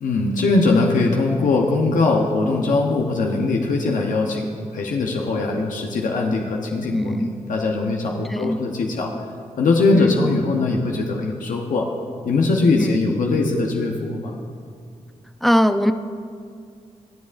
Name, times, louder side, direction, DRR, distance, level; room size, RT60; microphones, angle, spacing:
voice 1, 0.0-4.4 4.7-9.1 9.6-11.9 12.2-14.3, left 3 dB, 75° left, 0.9 m, -21 dB
voice 2, 6.9-7.3 8.3-8.7 9.9-10.3 12.8-13.0 15.4-15.9, equal, ahead, 0.6 m, -21 dB
21.5 x 7.2 x 2.6 m
supercardioid pair, 50°, 14 cm